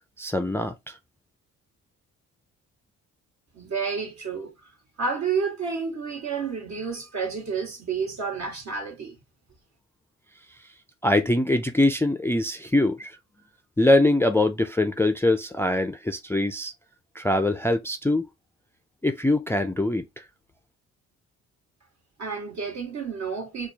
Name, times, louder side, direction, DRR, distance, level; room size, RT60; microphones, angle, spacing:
voice 1, 0.2-0.7 11.0-13.2 13.8-16.7 17.2-18.3 19.0-20.0, left 1 dB, 10° left, 0.3 m, -23 dB
voice 2, 3.5-4.5 5.0-9.2 22.2-23.7, right 5 dB, 65° right, 1.6 m, -30 dB
4.5 x 2.3 x 2.7 m
cardioid pair, 90°, 30 cm